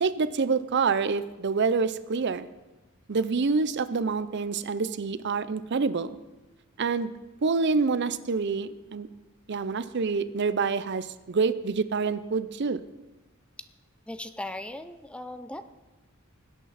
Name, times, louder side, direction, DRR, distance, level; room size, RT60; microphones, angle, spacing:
voice 1, 0.0-2.5 3.1-6.2 6.8-7.1 7.4-9.1 9.5-12.8, right 4 dB, 55° right, 14 dB, 0.5 m, -27 dB
voice 2, 14.1-15.6, left 1 dB, 5° left, 10 dB, 0.4 m, -38 dB
19.5 x 8.5 x 4.1 m, 1.1 s
head